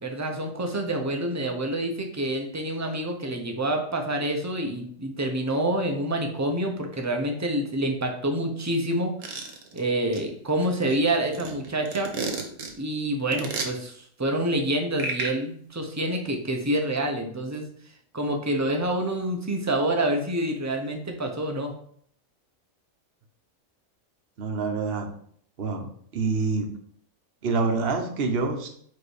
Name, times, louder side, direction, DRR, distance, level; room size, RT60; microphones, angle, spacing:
voice 1, 0.0-9.1 9.7-12.1 12.8-17.7 18.1-21.7, right 1 dB, 15° right, 3 dB, 0.6 m, -27 dB
sound 1, 9.2-9.8 10.1-10.2 10.6-12.7 13.3-13.7 15.0-15.3, right 4 dB, 80° right, 1.5 m, -31 dB
voice 2, 24.4-25.1 25.6-25.9 26.1-26.7 27.4-28.7, right 4 dB, 45° right, 3 dB, 1.0 m, -26 dB
5.0 x 4.1 x 4.8 m, 0.63 s
omnidirectional pair, 1.5 m